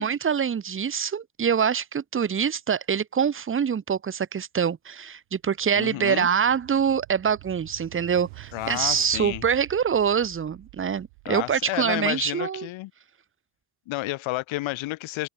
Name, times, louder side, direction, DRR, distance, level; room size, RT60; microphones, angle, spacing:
voice 1, 0.0-12.7, right 7 dB, 25° right, 1.0 m, -25 dB
sound 1, 5.4-11.7, right 40 dB or more, 90° right, 6.9 m, -47 dB
voice 2, 5.7-6.3 8.5-9.4 11.2-12.9 13.9-15.3, left 19 dB, 75° left, 4.4 m, -31 dB
supercardioid pair, 90°, 47 cm